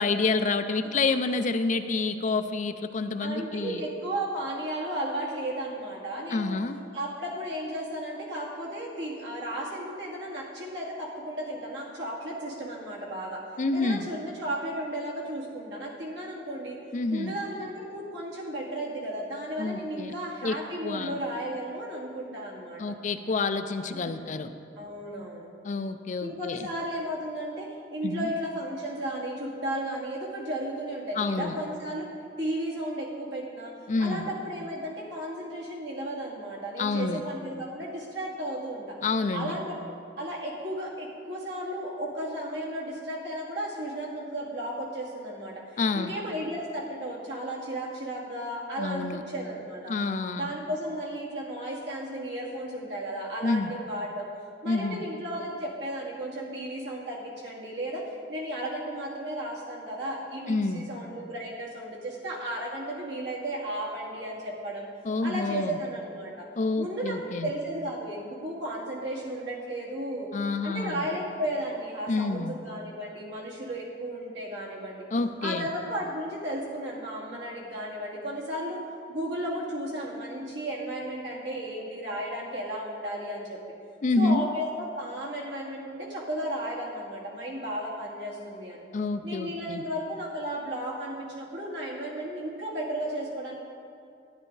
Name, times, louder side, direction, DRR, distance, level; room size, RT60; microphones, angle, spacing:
voice 1, 0.0-3.8 6.3-6.8 13.6-14.1 16.9-17.3 19.6-20.1 20.4-20.6 20.8-21.2 22.8-24.5 25.6-26.7 28.0-28.3 31.2-31.6 33.9-34.3 36.8-37.2 39.0-39.5 45.8-46.1 48.8-49.2 49.9-50.5 53.4-53.7 54.7-55.0 60.5-60.9 65.0-65.8 66.6-67.5 70.3-71.1 72.1-72.6 75.1-75.7 84.0-84.5 88.9-89.8, left 3 dB, 45° left, 9 dB, 0.5 m, -28 dB
voice 2, 3.2-6.6 6.9-13.4 13.7-16.8 17.1-22.9 23.9-24.3 24.8-25.5 26.2-32.1 32.4-33.7 34.0-39.0 39.3-49.9 50.4-54.3 54.6-58.0 58.3-64.9 65.2-66.5 66.8-70.3 70.6-75.0 75.4-78.8 79.1-83.6 84.2-88.8 89.2-93.5, right 1 dB, 75° right, -4 dB, 2.4 m, -34 dB
12.5 x 9.8 x 4.0 m, 2.4 s
head